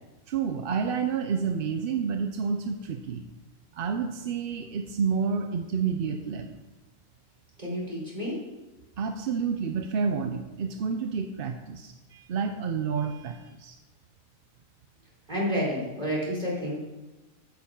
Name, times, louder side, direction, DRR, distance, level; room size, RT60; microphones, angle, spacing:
voice 1, 0.3-3.2 3.7-6.6 9.0-13.8, right 6 dB, 55° right, 6 dB, 0.7 m, -29 dB
voice 2, 7.6-8.4 15.3-16.7, equal, 30° right, -5 dB, 4.3 m, -30 dB
14.0 x 8.5 x 3.7 m, 1.1 s
omnidirectional pair, 1.4 m